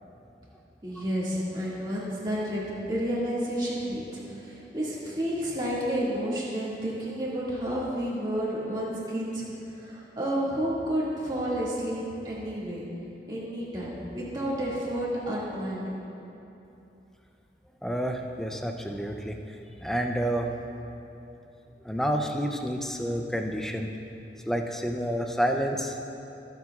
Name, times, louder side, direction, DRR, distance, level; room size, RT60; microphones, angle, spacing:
voice 1, 0.8-9.4 9.7-12.9 13.3-16.0, equal, 25° right, -7 dB, 2.1 m, -31 dB
voice 2, 17.8-19.4 19.8-20.5 21.8-23.9 24.5-26.0, equal, 5° left, 3 dB, 0.5 m, -29 dB
22.0 x 7.5 x 2.4 m, 2.9 s
head